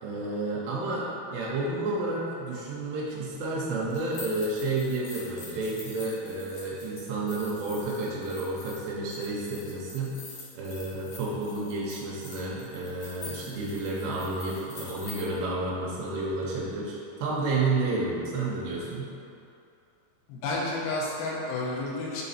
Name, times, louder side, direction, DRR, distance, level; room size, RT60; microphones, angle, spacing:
voice 1, 0.0-10.1 10.6-19.1, right 2 dB, 85° right, -5 dB, 3.0 m, -31 dB
sound 1, 3.9-15.2, left 3 dB, 65° left, 1.9 m, -46 dB
voice 2, 20.3-22.2, left 2 dB, 85° left, -4 dB, 3.0 m, -31 dB
6.9 x 3.9 x 4.2 m, 2.7 s
omnidirectional pair, 4.7 m